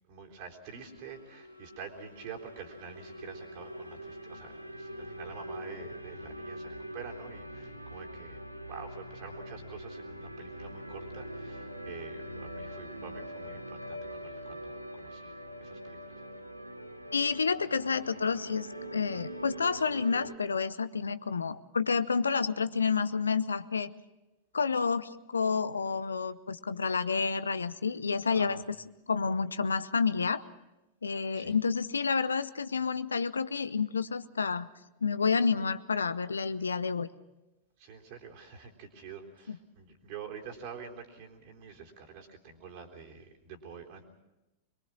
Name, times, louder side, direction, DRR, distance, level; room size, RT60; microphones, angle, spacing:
voice 1, 0.1-8.4 8.7-15.3 15.6-16.2 28.3-28.6 31.3-31.6 37.8-44.0, right 6 dB, 45° right, 2 dB, 3.7 m, -47 dB
sound 1, 0.7-20.3, equal, 90° left, 1.3 m, -43 dB
voice 2, 17.1-23.9 24.5-28.6 29.1-30.4 31.0-34.7 35.0-37.1 39.5-39.6, left 5 dB, 75° left, 15 dB, 0.7 m, -29 dB
24.5 x 22.5 x 6.1 m, 0.98 s
figure-of-eight pair, 90°, 0 cm